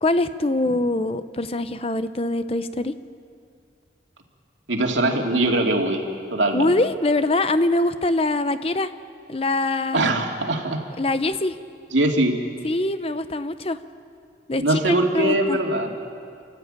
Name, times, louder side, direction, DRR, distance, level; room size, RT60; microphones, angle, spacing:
voice 1, 0.0-2.9 6.5-8.9 9.3-10.1 11.0-11.6 12.6-13.8 14.5-15.6, left 2 dB, 30° left, 12 dB, 0.7 m, -23 dB
voice 2, 4.7-6.0 6.3-6.7 9.9-10.8 11.9-12.4 14.6-15.9, right 1 dB, 80° right, 2 dB, 2.5 m, -21 dB
29.5 x 13.0 x 9.0 m, 2.3 s
head